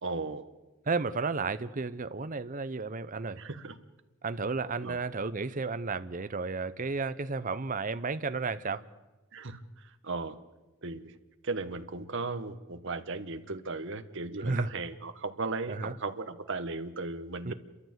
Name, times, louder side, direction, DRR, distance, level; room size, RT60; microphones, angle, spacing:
voice 1, 0.0-0.5 3.4-3.8 4.8-5.0 9.3-10.4 10.8-11.2 11.4-17.5, right 3 dB, 60° right, 1.2 m, -36 dB
voice 2, 0.9-3.4 4.2-8.8 14.4-14.7 15.7-15.9 17.5-17.6, right 4 dB, 40° right, 0.8 m, -32 dB
29.5 x 13.5 x 8.1 m
head